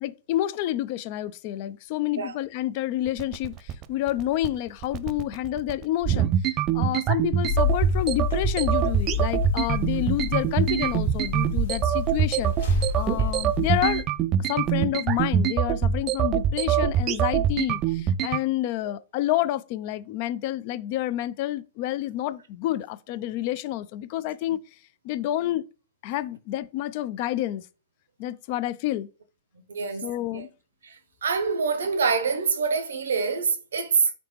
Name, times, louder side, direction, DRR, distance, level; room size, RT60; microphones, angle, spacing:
voice 1, 0.0-14.0 14.5-24.6 25.0-25.6 26.0-27.7 28.2-29.1 30.0-30.5, left 14 dB, 50° left, 0.3 m, -29 dB
sound 1, 3.1-18.4, right 9 dB, 35° right, 0.3 m, -24 dB
sound 2, 7.5-14.0, left 7 dB, 75° left, 1.6 m, -30 dB
voice 2, 29.7-30.5 30.8-34.1, right 5 dB, 80° right, 0.7 m, -26 dB
3.9 x 3.4 x 3.0 m
hypercardioid pair, 115°, 0 cm